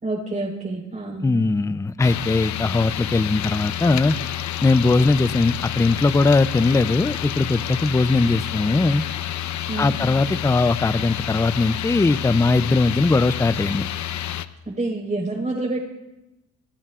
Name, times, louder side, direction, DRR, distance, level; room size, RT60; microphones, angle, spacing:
voice 1, 0.0-1.2 9.7-10.0 14.6-15.8, right 2 dB, 25° right, -2 dB, 4.3 m, -27 dB
voice 2, 1.2-4.2 4.6-9.0 9.8-13.9, left 3 dB, 10° left, 13 dB, 0.5 m, -20 dB
sound 1, 2.0-14.5, left 12 dB, 70° left, 0.9 m, -29 dB
27.5 x 18.0 x 2.5 m, 0.99 s
cardioid pair, 90°, 30 cm